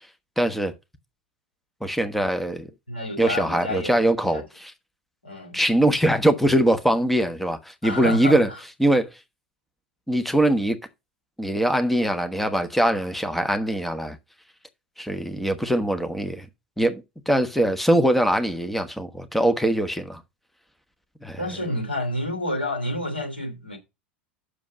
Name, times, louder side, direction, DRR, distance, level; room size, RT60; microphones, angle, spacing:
voice 1, 0.4-0.7 1.8-2.7 3.2-4.7 5.5-8.5 8.8-9.1 10.1-10.8 11.4-14.2 15.0-16.4 16.8-20.2 21.2-21.4, right 1 dB, ahead, 1.1 m, -22 dB
voice 2, 2.9-4.4 5.2-5.6 7.8-8.6 21.4-23.8, left 1 dB, 85° left, 2.9 m, -29 dB
7.5 x 6.5 x 5.1 m
figure-of-eight pair, 80°, 6 cm